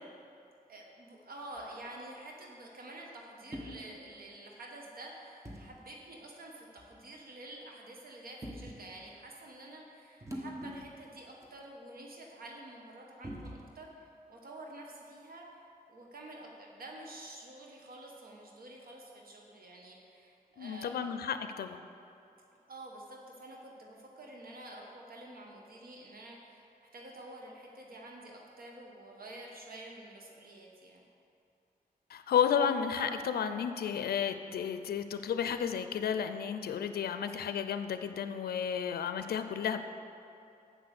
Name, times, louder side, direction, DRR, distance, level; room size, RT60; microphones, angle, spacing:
voice 1, 0.7-15.6 15.9-21.1 22.7-31.0, right 1 dB, 70° right, -1 dB, 1.2 m, -49 dB
sound 1, 1.6-1.8 3.5-3.8 5.5-5.7 6.8-7.0 8.4-8.8 10.2-11.1 11.4-11.5 13.2-13.8, equal, 20° right, 1.3 m, -43 dB
voice 2, 20.6-21.8 32.1-39.8, left 8 dB, 90° left, 9 dB, 0.4 m, -32 dB
7.8 x 6.0 x 6.5 m, 2.6 s
cardioid pair, 65°, 16 cm